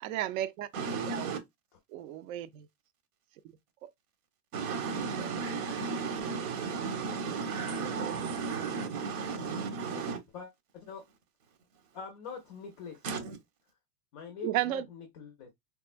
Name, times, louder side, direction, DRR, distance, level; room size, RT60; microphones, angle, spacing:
voice 1, 0.0-0.7 0.9-1.4 1.9-2.6 14.4-14.9, right 13 dB, 65° right, 0.5 m, -33 dB
voice 2, 0.7-1.4 4.5-10.2 13.0-13.4, right 5 dB, 85° right, 1.3 m, -34 dB
voice 3, 9.9-11.0 11.9-13.1 14.1-15.5, left 6 dB, 30° left, 0.4 m, -45 dB
3.5 x 2.1 x 2.4 m
supercardioid pair, 165°, 44 cm